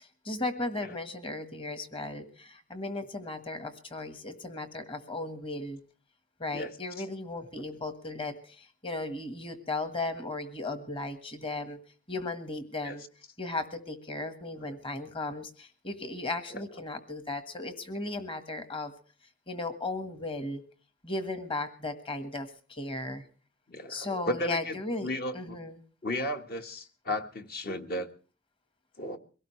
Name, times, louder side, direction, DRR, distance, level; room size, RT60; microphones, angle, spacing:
voice 1, 0.2-5.8 6.4-11.8 12.1-13.0 13.4-18.9 19.5-20.6 21.0-23.2 23.9-25.8, left 2 dB, 25° left, 10 dB, 1.5 m, -36 dB
voice 2, 23.7-25.6 26.0-28.1 29.0-29.2, left 1 dB, 50° left, 6 dB, 1.5 m, -35 dB
23.0 x 17.5 x 3.2 m, 0.39 s
head